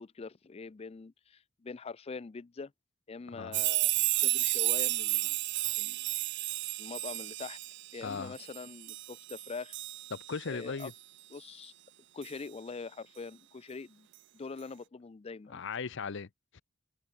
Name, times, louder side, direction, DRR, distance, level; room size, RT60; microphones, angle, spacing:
voice 1, 0.0-2.7 3.1-5.4 5.8-6.1 6.8-7.6 7.9-9.8 10.5-10.9 11.3-11.7 12.1-14.1 14.3-15.6, left 4 dB, 30° left, 0.4 m, -43 dB
sound 1, 3.5-10.4 10.8-10.9 12.2-12.3, right 19 dB, 60° right, 0.6 m, -32 dB
voice 2, 8.0-8.3 10.1-10.9 15.5-16.6, left 5 dB, 60° left, 0.7 m, -38 dB
head